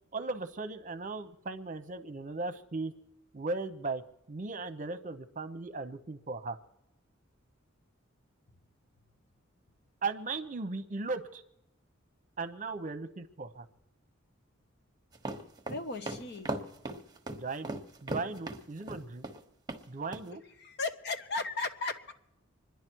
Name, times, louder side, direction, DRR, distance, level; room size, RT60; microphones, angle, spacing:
voice 1, 0.1-2.9 3.3-4.0 4.3-6.6 10.0-11.4 12.4-13.7 17.4-19.2 19.9-20.4, right 3 dB, 40° right, 10 dB, 0.9 m, -37 dB
sound 1, 15.1-19.4 19.7-19.8 20.1-20.2, right 2 dB, 20° right, 1.2 m, -37 dB
voice 2, 15.7-16.5 20.6-22.1, left 3 dB, 55° left, 7 dB, 1.2 m, -36 dB
26.5 x 10.5 x 4.6 m, 0.81 s
head